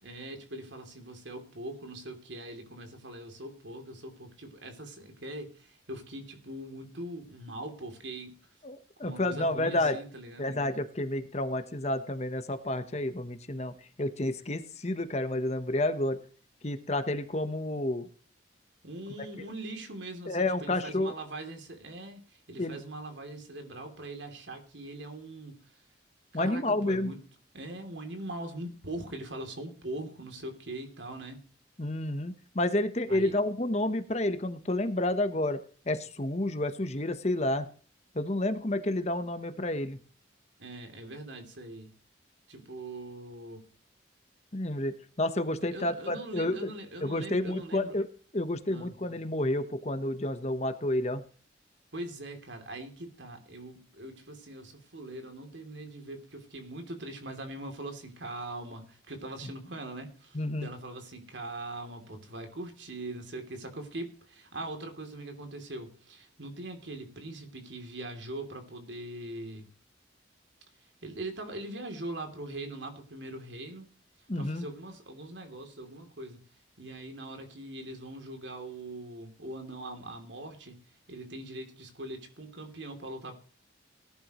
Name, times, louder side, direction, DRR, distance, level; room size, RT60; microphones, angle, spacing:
voice 1, 0.0-8.4 9.0-10.5 18.8-25.6 26.3-27.3 27.5-31.5 33.1-33.4 40.6-41.9 42.5-43.7 45.6-48.0 48.7-48.9 51.9-69.7 71.0-74.0 74.3-76.4 76.8-83.4, right 1 dB, 70° right, 3.0 m, -42 dB
voice 2, 8.6-10.0 10.4-13.7 14.0-16.2 16.6-18.1 20.3-21.1 22.6-22.8 26.3-27.1 31.8-35.6 35.9-37.7 38.1-40.0 44.5-46.7 47.0-48.1 48.3-51.2 60.3-60.7 74.3-74.7, left 1 dB, 35° left, 1.1 m, -30 dB
19.0 x 11.0 x 3.1 m
head